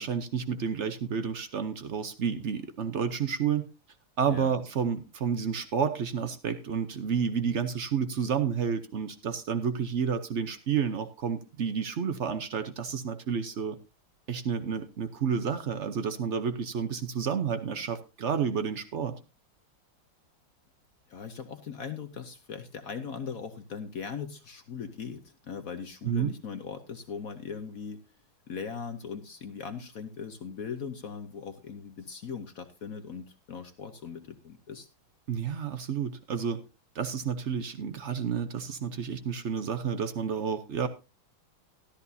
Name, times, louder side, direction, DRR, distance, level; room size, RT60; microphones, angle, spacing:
voice 1, 0.0-3.7 4.2-13.8 14.3-19.2 26.0-26.3 35.3-36.6 36.9-40.9, right 7 dB, 85° right, 10 dB, 0.6 m, -30 dB
voice 2, 21.1-28.0 28.5-34.9, left 6 dB, 55° left, 8 dB, 1.0 m, -39 dB
13.5 x 13.0 x 2.7 m, 0.29 s
omnidirectional pair, 2.4 m